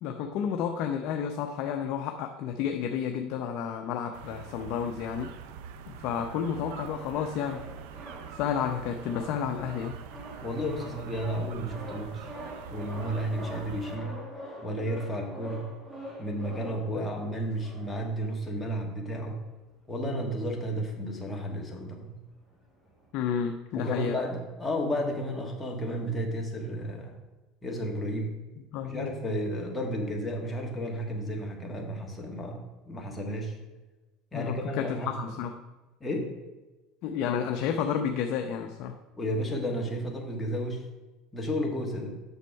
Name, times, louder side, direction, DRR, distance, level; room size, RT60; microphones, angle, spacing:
voice 1, 0.0-5.3 5.9-7.7 8.3-10.0 23.1-24.2 28.7-29.1 34.3-35.5 37.0-39.0, left 8 dB, 55° left, 4 dB, 0.6 m, -31 dB
sound 1, 4.1-14.0, right 8 dB, 75° right, 0.5 m, -44 dB
sound 2, 6.5-18.3 18.8-18.9 19.1-19.3 19.8-21.1 21.3-23.1, equal, 10° right, 1.8 m, -45 dB
voice 2, 10.4-12.3 12.7-14.1 14.6-15.7 16.2-19.4 19.9-22.1 23.7-27.1 27.6-28.4 28.8-33.6 34.3-35.1 36.0-36.4 39.2-40.8 41.3-42.2, equal, 10° left, 0 dB, 1.6 m, -32 dB
8.1 x 6.3 x 4.6 m, 1.1 s
supercardioid pair, 130°, 0 cm